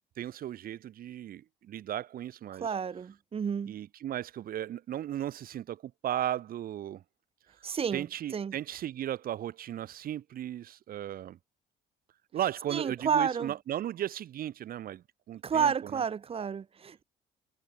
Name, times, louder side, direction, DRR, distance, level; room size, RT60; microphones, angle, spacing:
voice 1, 0.2-2.7 3.7-7.0 7.9-11.4 12.3-16.0, right 11 dB, 60° right, 2.2 m, -36 dB
voice 2, 2.6-3.8 7.6-8.0 8.3-8.5 12.7-13.5 15.4-17.0, right 6 dB, 35° right, 1.6 m, -30 dB
cardioid pair, 110°, 17 cm